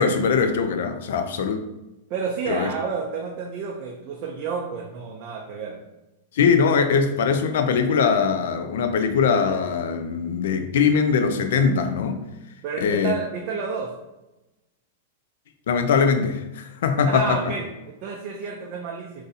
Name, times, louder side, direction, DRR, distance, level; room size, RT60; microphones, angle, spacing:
voice 1, 0.0-1.6 2.5-2.7 6.3-12.2 12.8-13.1 15.7-17.4, left 5 dB, 65° left, 7 dB, 0.4 m, -21 dB
voice 2, 2.1-5.8 12.6-13.9 17.0-19.2, right 5 dB, 35° right, 0 dB, 0.4 m, -30 dB
2.6 x 2.6 x 4.0 m, 1.0 s
supercardioid pair, 165°, 0 cm